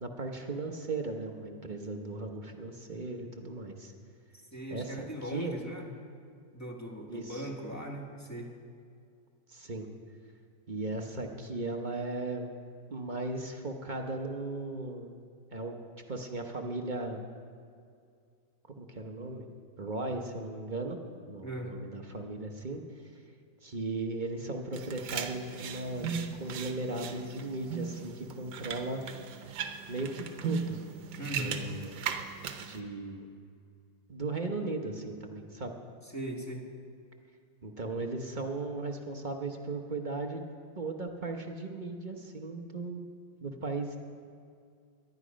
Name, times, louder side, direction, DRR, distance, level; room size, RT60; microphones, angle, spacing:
voice 1, 0.0-3.9 4.7-5.1 5.3-5.5 7.1-7.5 9.5-9.9 10.7-12.5 12.9-15.1 15.5-15.8 16.1-17.2 18.8-19.5 19.8-21.0 21.3-22.8 23.6-29.0 29.9-30.8 31.3-32.0 32.7-33.3 34.1-35.7 37.6-40.4 40.8-43.1 43.4-44.0, right 2 dB, 35° right, 3 dB, 0.7 m, -37 dB
voice 2, 4.5-5.9 6.5-8.5 21.4-21.7 31.2-31.6 36.1-36.7, right 1 dB, 10° left, 0 dB, 1.7 m, -39 dB
sound 1, 24.7-32.8, right 7 dB, 70° right, 1.4 m, -38 dB
18.5 x 12.0 x 5.2 m, 2.3 s
omnidirectional pair, 2.1 m